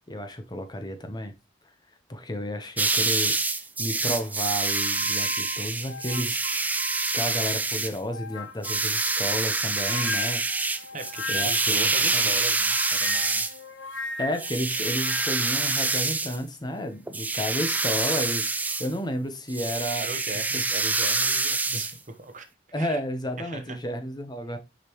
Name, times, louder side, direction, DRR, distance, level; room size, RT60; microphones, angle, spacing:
voice 1, 0.1-1.3 2.1-3.4 3.8-6.4 7.1-10.7 11.3-12.3 14.2-20.1 20.5-20.6 22.7-24.6, equal, 20° left, 0.8 m, -32 dB
sound 1, 2.8-8.0 8.6-13.6 14.4-16.4 17.1-18.9 19.5-21.9, right 3 dB, 10° right, 0.4 m, -26 dB
sound 2, 4.3-7.6 8.1-11.8 12.6-15.6, left 2 dB, 90° left, 1.0 m, -38 dB
voice 2, 10.9-13.5 20.0-22.5 22.8-23.0 23.4-23.8, right 3 dB, 40° right, 0.9 m, -38 dB
6.6 x 5.1 x 3.0 m
head